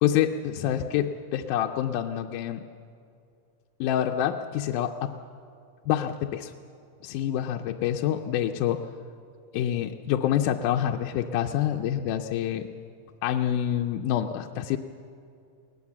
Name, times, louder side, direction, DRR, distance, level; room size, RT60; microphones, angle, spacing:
voice 1, 0.0-2.7 3.8-5.1 5.9-6.5 7.0-8.9 9.5-12.7 13.2-14.8, left 10 dB, 80° left, 4 dB, 2.1 m, -27 dB
20.0 x 18.5 x 7.2 m, 2.5 s
omnidirectional pair, 3.7 m